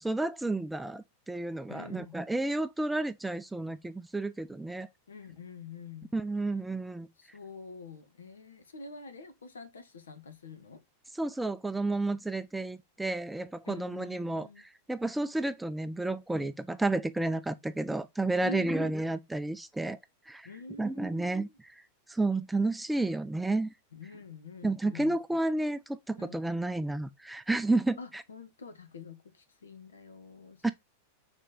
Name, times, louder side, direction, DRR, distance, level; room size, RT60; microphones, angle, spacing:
voice 1, 0.0-4.9 6.1-7.1 11.2-20.0 20.3-20.5 20.8-21.8 22.1-23.7 24.6-28.2 30.6-30.7, right 2 dB, 5° right, 0.5 m, -31 dB
voice 2, 1.7-2.2 5.1-6.1 7.2-10.8 13.6-14.6 16.4-16.5 18.4-19.0 20.4-21.5 23.1-23.2 23.9-25.2 26.2-26.4 28.0-30.7, left 4 dB, 70° left, 1.6 m, -46 dB
6.4 x 4.4 x 3.9 m
figure-of-eight pair, 90°, 0 cm